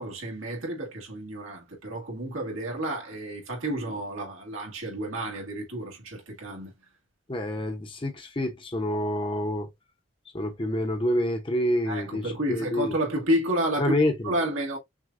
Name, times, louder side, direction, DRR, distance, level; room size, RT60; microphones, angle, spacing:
voice 1, 0.0-6.7 11.8-13.9 14.2-14.8, right 1 dB, 85° right, 1.8 m, -30 dB
voice 2, 7.3-9.7 10.3-12.2 12.5-12.9 13.8-14.3, left 1 dB, 25° left, 0.8 m, -27 dB
6.2 x 2.3 x 2.5 m
head